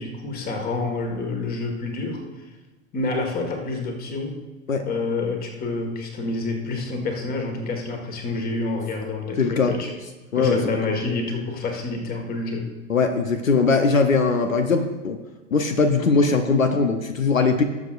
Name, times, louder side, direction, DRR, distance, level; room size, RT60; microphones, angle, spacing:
voice 1, 0.0-2.2 2.9-4.4 4.8-9.9 10.3-12.7, left 3 dB, 25° left, 4 dB, 1.7 m, -28 dB
voice 2, 9.4-9.7 10.3-10.6 12.9-15.2 15.5-17.6, left 4 dB, 80° left, 7 dB, 0.9 m, -20 dB
18.5 x 7.2 x 2.5 m, 1.2 s
figure-of-eight pair, 95°, 39 cm